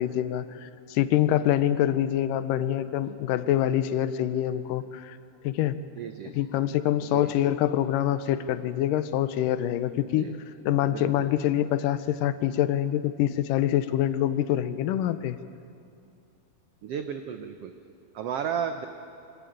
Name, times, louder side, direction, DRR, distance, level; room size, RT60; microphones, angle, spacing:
voice 1, 0.0-5.2 5.4-5.8 6.3-10.3 10.6-15.4, left 12 dB, 80° left, 13 dB, 2.4 m, -25 dB
voice 2, 6.0-6.4 7.1-7.3 10.1-10.3 10.9-11.4 16.8-17.7 18.1-18.9, right 8 dB, 90° right, 7 dB, 1.3 m, -33 dB
22.5 x 15.0 x 9.2 m, 2.5 s
omnidirectional pair, 3.8 m